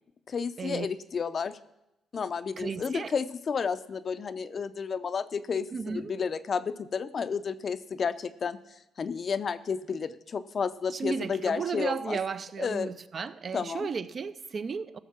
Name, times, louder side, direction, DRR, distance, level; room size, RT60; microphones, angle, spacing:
voice 1, 0.3-1.6 2.1-8.6 9.0-12.2 12.6-12.9 13.5-13.9, left 6 dB, 45° left, 0.6 m, -31 dB
voice 2, 2.6-3.1 5.7-6.1 10.9-15.0, right 5 dB, 45° right, 0.5 m, -34 dB
14.5 x 6.5 x 5.9 m
cardioid pair, 90°, 0 cm